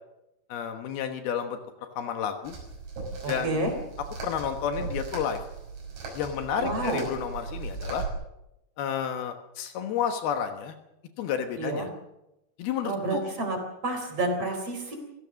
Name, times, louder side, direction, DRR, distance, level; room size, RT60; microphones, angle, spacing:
voice 1, 0.5-1.6 2.0-2.6 3.3-3.7 4.2-5.4 6.1-8.0 8.8-10.8 11.2-11.9 12.6-13.2, left 8 dB, 70° left, 6 dB, 3.0 m, -31 dB
sound 1, 2.5-8.1, right 4 dB, 90° right, 8.3 m, -37 dB
voice 2, 3.2-3.7 6.5-7.0 11.6-11.9 12.8-13.6 13.8-15.0, right 2 dB, 35° right, 4 dB, 4.6 m, -29 dB
27.5 x 16.5 x 6.4 m, 0.92 s
omnidirectional pair, 4.9 m